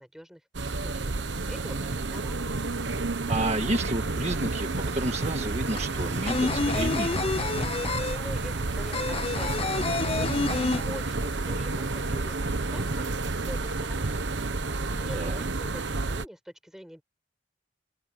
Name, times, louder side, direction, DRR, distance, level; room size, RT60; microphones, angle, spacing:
voice 1, 0.0-2.4 8.1-10.6 10.8-13.1 13.5-14.1 14.9-17.0, equal, 5° right, 6.9 m, -45 dB
sound 1, 0.5-16.2, right 3 dB, 85° right, 1.1 m, -30 dB
voice 2, 3.3-7.2 15.2-15.4, right 1 dB, 35° right, 1.8 m, -31 dB
sound 2, 4.5-4.6 4.9-11.5 11.7-11.8 12.1-12.9, left 3 dB, 30° left, 0.5 m, -29 dB
head